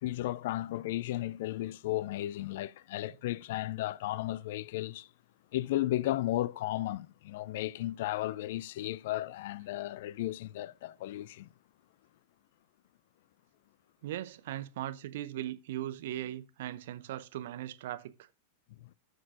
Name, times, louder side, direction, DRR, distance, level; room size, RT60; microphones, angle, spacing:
voice 1, 0.0-5.1 5.5-11.5 18.8-18.9, left 15 dB, 55° left, 0.3 m, -34 dB
voice 2, 14.0-18.1, right 13 dB, 55° right, 0.7 m, -39 dB
15.0 x 6.4 x 2.5 m
figure-of-eight pair, 90°, 0 cm